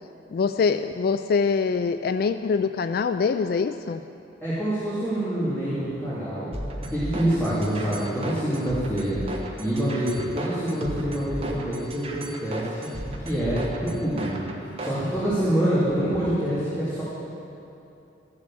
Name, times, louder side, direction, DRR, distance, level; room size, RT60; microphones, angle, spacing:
voice 1, 0.3-4.0, left 5 dB, 55° left, 10 dB, 0.3 m, -24 dB
voice 2, 4.4-6.5 6.9-9.2 9.6-12.9 13.2-14.5 14.8-17.0, right 1 dB, 15° left, -11 dB, 2.7 m, -26 dB
sound 1, 6.5-15.0, right 1 dB, 30° right, 1.3 m, -34 dB
14.5 x 7.4 x 7.6 m, 2.8 s
head